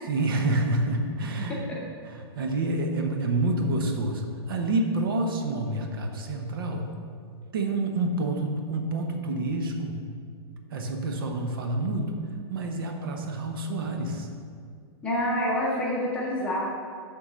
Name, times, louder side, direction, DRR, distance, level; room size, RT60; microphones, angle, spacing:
voice 1, 0.1-1.7 2.0-6.9 7.5-10.0 10.7-12.2 12.5-14.3, right 2 dB, 60° right, 3 dB, 0.8 m, -28 dB
voice 2, 15.0-16.6, left 1 dB, 10° left, -5 dB, 0.7 m, -27 dB
7.0 x 3.8 x 6.2 m, 2.2 s
supercardioid pair, 180°, 14 cm